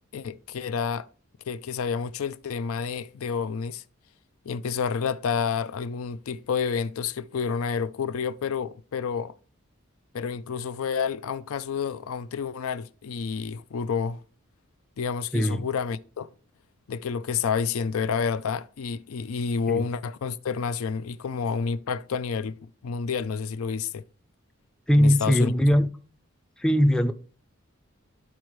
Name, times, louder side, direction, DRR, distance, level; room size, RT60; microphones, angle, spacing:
voice 1, 0.1-1.1 1.5-3.8 4.4-9.3 10.1-14.2 15.0-16.3 16.9-24.0 25.0-25.5, left 6 dB, 85° left, 0.4 m, -29 dB
voice 2, 15.3-15.6 19.7-19.8 24.9-25.9 26.6-27.1, equal, 5° left, 0.4 m, -20 dB
12.5 x 4.4 x 3.1 m
head